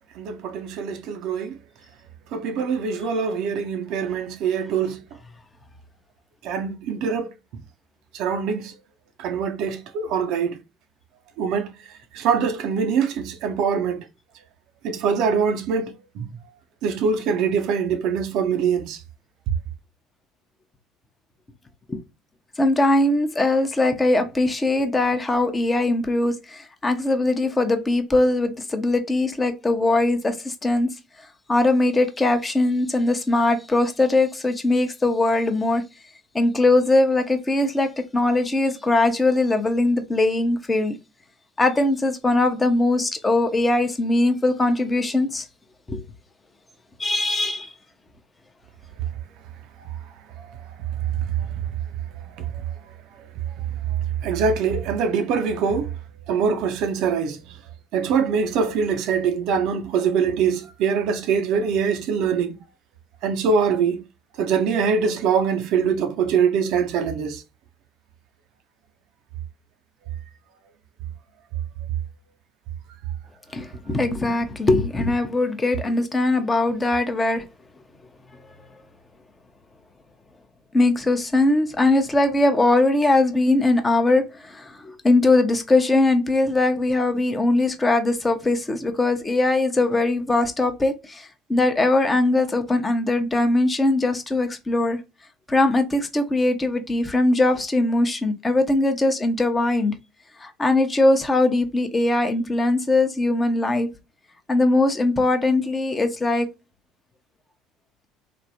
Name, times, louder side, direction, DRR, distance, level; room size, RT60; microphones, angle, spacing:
voice 1, 0.2-1.6 2.3-5.0 6.4-7.3 8.1-8.7 9.2-10.6 11.4-11.7 12.1-14.1 14.8-16.3 16.8-19.0 51.4-51.5 52.4-52.5 54.2-55.9 56.3-57.6 57.9-62.6 63.2-64.0 64.4-67.4, right 6 dB, 60° right, 0.5 m, -23 dB
voice 2, 22.6-30.9 31.5-35.8 36.3-41.0 41.6-45.4 45.9-46.0 47.0-47.7 73.5-77.5 80.7-95.0 95.5-99.9 100.4-103.9 104.5-106.5, left 2 dB, 20° left, 0.7 m, -21 dB
3.3 x 2.1 x 2.7 m
figure-of-eight pair, 60°, 0 cm